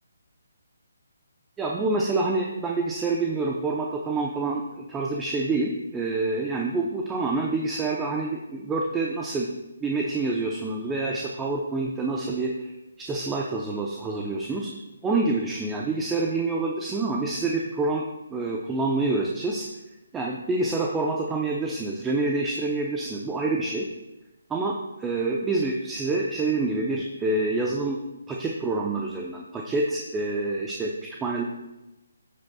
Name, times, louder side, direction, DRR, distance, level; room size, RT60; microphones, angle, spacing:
voice 1, 1.6-14.7 15.0-18.0 18.3-19.7 20.1-23.9 24.5-28.0 28.3-31.4, right 3 dB, 10° right, -1 dB, 0.7 m, -27 dB
13.5 x 8.0 x 2.3 m, 1.0 s
figure-of-eight pair, 145°, 0 cm